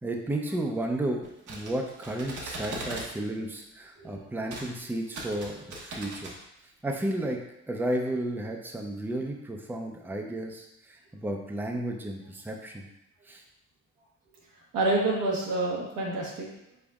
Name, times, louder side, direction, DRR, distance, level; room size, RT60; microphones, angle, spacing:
voice 1, 0.0-6.3 6.8-7.4 7.7-12.9 13.3-13.4, right 1 dB, 5° right, 1 dB, 0.6 m, -33 dB
sound 1, 1.2-3.1 4.5-4.7 5.0-6.4, right 2 dB, 70° right, 1.2 m, -39 dB
voice 2, 14.7-16.5, right 2 dB, 90° right, -3 dB, 1.3 m, -28 dB
5.3 x 4.0 x 2.4 m, 0.84 s
cardioid pair, 90°, 30 cm